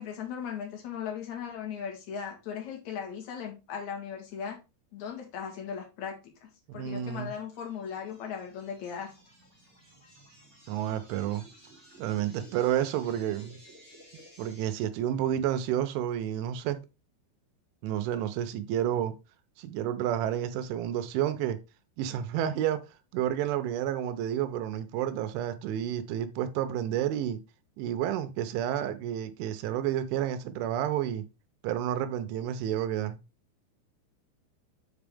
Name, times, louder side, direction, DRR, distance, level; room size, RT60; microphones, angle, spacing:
voice 1, 0.0-4.6 4.9-9.1, left 7 dB, 55° left, 2.1 m, -38 dB
voice 2, 6.7-7.3 10.7-11.5 12.0-13.6 14.4-16.8 17.8-19.1 19.6-21.6 22.0-22.8 23.1-27.4 27.8-31.3 31.6-33.2, right 11 dB, 80° right, 3.1 m, -30 dB
sound 1, 7.1-14.8, right 1 dB, 5° left, 1.8 m, -55 dB
7.5 x 5.0 x 3.5 m
omnidirectional pair, 5.6 m